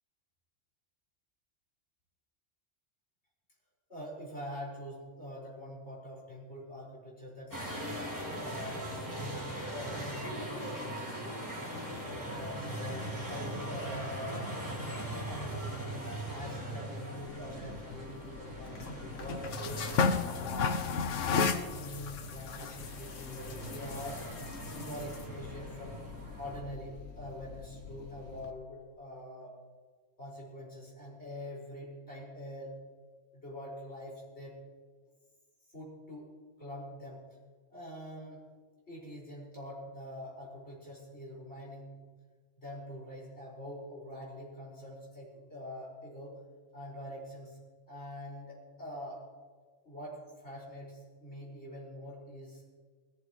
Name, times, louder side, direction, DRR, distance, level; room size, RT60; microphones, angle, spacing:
voice 1, 3.9-7.8 8.3-11.4 12.3-14.4 15.3-20.8 21.2-24.2 24.6-26.0 26.4-29.5 30.2-32.8 33.3-34.5 35.7-36.3 36.6-37.2 37.7-38.4 38.9-42.0 42.6-46.4 46.7-47.6 47.9-49.2 49.8-52.6, equal, 55° left, -6 dB, 6.0 m, -45 dB
sound 1, 7.5-26.6, right 1 dB, 15° right, 3.5 m, -40 dB
sound 2, 17.3-28.5, left 5 dB, 70° left, 1.1 m, -36 dB
21.0 x 14.5 x 3.2 m, 1.5 s
omnidirectional pair, 1.3 m